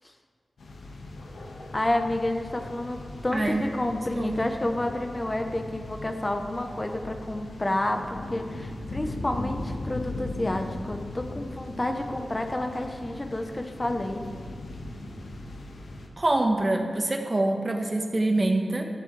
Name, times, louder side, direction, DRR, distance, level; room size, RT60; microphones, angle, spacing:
sound 1, 0.6-16.1, left 2 dB, 85° left, 1.8 m, -39 dB
voice 1, 1.7-14.3, left 1 dB, 25° left, 4 dB, 1.1 m, -30 dB
voice 2, 4.2-4.5 16.2-18.8, right 2 dB, 35° right, 3 dB, 1.5 m, -25 dB
17.0 x 13.0 x 3.4 m, 2.1 s
cardioid pair, 60°, 0 cm